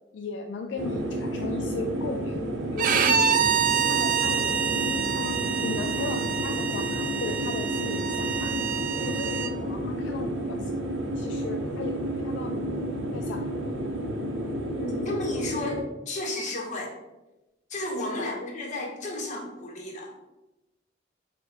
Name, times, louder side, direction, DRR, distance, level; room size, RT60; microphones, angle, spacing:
voice 1, 0.1-2.4 2.7-3.4 3.9-4.9 5.2-8.6 9.0-10.7 11.2-12.8 13.1-13.5 18.1-18.4, left 3 dB, 70° left, 4 dB, 0.3 m, -36 dB
sound 1, 0.8-15.8, right 1 dB, 85° right, 0.7 m, -31 dB
Bowed string instrument, 2.8-9.5, right 8 dB, 45° right, 0.3 m, -27 dB
voice 2, 14.7-16.9 17.7-20.1, left 2 dB, 40° left, -1 dB, 1.0 m, -33 dB
4.7 x 2.2 x 4.0 m, 0.99 s
head